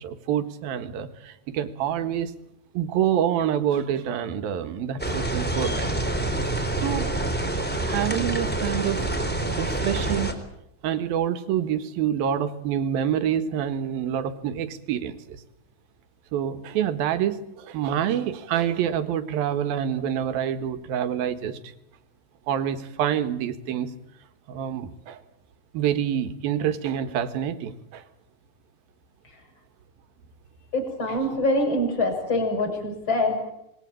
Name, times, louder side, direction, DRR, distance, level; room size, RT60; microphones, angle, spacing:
voice 1, 0.0-2.3 2.7-6.1 6.8-7.1 7.7-9.1 9.5-10.4 10.8-15.4 16.3-21.6 22.5-23.9 24.5-25.2 25.7-28.0, right 9 dB, 70° right, 10 dB, 3.2 m, -27 dB
sound 1, 5.0-10.3, right 2 dB, 5° left, 3.1 m, -27 dB
voice 2, 30.7-33.5, left 1 dB, 25° left, 4 dB, 7.3 m, -24 dB
27.0 x 20.5 x 8.9 m, 0.81 s
omnidirectional pair, 4.6 m